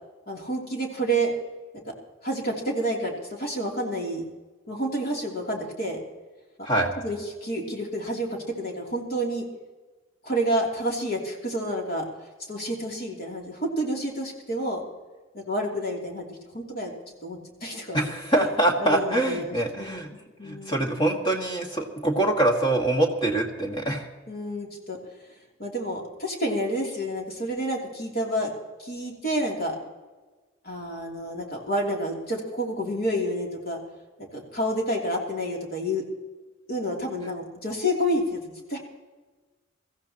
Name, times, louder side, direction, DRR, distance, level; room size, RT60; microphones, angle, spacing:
voice 1, 0.3-1.3 2.2-3.1 3.4-4.2 4.7-6.0 7.0-9.4 10.2-12.0 12.5-14.8 15.3-16.9 17.2-18.0 18.4-18.5 18.8-19.9 20.4-20.8 24.3-25.0 25.6-28.5 28.8-29.7 30.6-33.8 34.3-36.0 36.7-38.4 38.7-38.8, equal, 50° left, -1 dB, 3.1 m, -29 dB
voice 2, 17.9-20.1 20.4-24.1, right 1 dB, 25° left, 1 dB, 2.0 m, -24 dB
22.5 x 15.0 x 3.0 m, 1.3 s
head